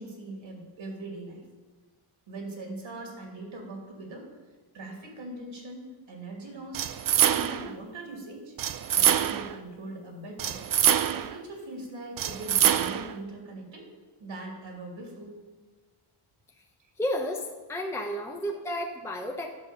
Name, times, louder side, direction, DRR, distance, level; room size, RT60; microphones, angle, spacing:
voice 1, 0.0-1.4 2.3-4.3 4.7-6.8 7.1-8.5 8.9-10.6 11.1-13.9 14.2-15.3 18.1-18.2, right 2 dB, 65° right, 0 dB, 2.7 m, -41 dB
sound 1, 6.7-7.7 8.6-9.6 10.4-11.4 12.2-13.1, right 10 dB, 45° right, 0.5 m, -25 dB
voice 2, 17.0-19.5, equal, 5° left, 2 dB, 0.7 m, -32 dB
11.0 x 5.4 x 6.8 m, 1.3 s
wide cardioid pair, 125°, 50 cm